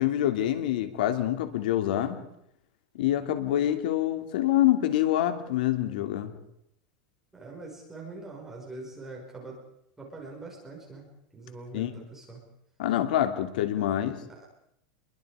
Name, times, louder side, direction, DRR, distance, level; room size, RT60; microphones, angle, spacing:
voice 1, 0.0-2.2 2.9-6.3 11.7-11.9 12.8-14.2, left 12 dB, 80° left, 7 dB, 2.8 m, -26 dB
voice 2, 7.3-9.6 10.0-12.4 14.0-14.5, right 3 dB, 10° right, -2 dB, 5.5 m, -43 dB
28.5 x 23.0 x 5.0 m, 0.78 s
supercardioid pair, 145°, 5 cm